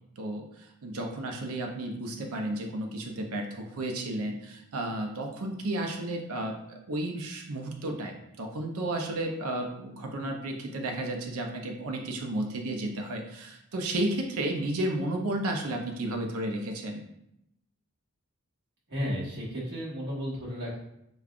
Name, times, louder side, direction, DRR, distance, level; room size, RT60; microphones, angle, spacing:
voice 1, 0.2-17.0, right 1 dB, 70° right, 2 dB, 0.6 m, -33 dB
voice 2, 18.9-20.8, equal, 50° right, -6 dB, 1.4 m, -33 dB
5.0 x 2.3 x 2.4 m, 0.79 s
head